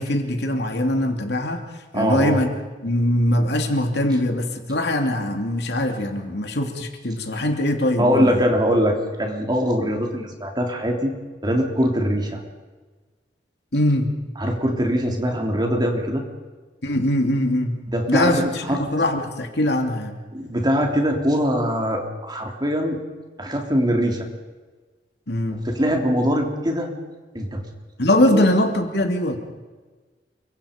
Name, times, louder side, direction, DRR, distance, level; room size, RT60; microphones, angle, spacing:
voice 1, 0.0-1.6 1.9-2.5 2.8-8.4 13.7-14.1 16.8-17.8 18.1-20.1 25.3-25.6 28.0-29.4, left 1 dB, 65° left, 4 dB, 2.9 m, -22 dB
voice 2, 1.9-2.4 8.0-11.1 11.4-12.4 14.4-16.2 17.9-18.8 20.3-23.0 23.4-24.3 25.5-26.9 27.3-27.6 28.3-28.4, equal, 25° right, 2 dB, 3.2 m, -22 dB
28.5 x 24.0 x 5.3 m, 1.3 s
head